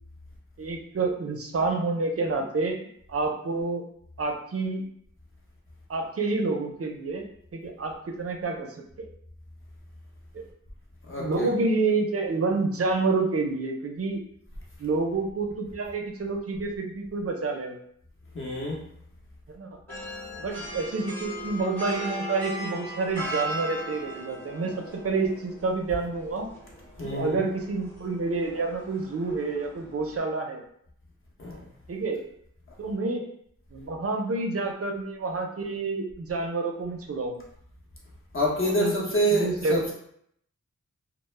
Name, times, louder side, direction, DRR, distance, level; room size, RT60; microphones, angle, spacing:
voice 1, 0.6-2.8 3.1-3.8 4.2-4.8 5.9-7.2 7.5-9.1 10.3-10.4 11.2-14.2 14.8-17.8 19.5-19.7 20.4-24.7 25.0-26.5 27.0-30.6 31.9-32.2 32.8-33.2 33.7-37.4 38.6-39.9, right 3 dB, 50° right, 3 dB, 0.5 m, -28 dB
voice 2, 11.1-11.5 18.3-18.8 27.0-27.5 31.4-31.7 38.3-39.9, right 1 dB, 40° left, -3 dB, 0.8 m, -27 dB
sound 1, 19.9-30.2, right 1 dB, 5° left, 1.0 m, -38 dB
2.1 x 2.0 x 3.1 m, 0.68 s
wide cardioid pair, 65°, 31 cm